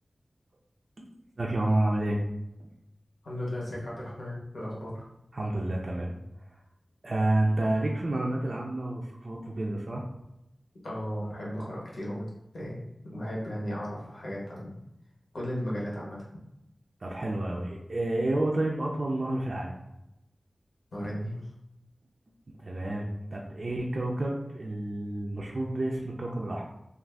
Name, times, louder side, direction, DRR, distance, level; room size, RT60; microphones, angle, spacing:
voice 1, 1.4-2.2 2.6-2.7 5.3-6.1 7.0-10.0 17.0-19.8 22.6-26.6, right 1 dB, 50° right, -2 dB, 0.4 m, -29 dB
voice 2, 3.2-5.1 10.8-12.3 12.5-12.8 13.1-14.7 15.3-16.2 20.9-21.4, equal, 80° left, -5 dB, 0.9 m, -35 dB
2.5 x 2.4 x 3.3 m, 0.87 s
wide cardioid pair, 80°, 0 cm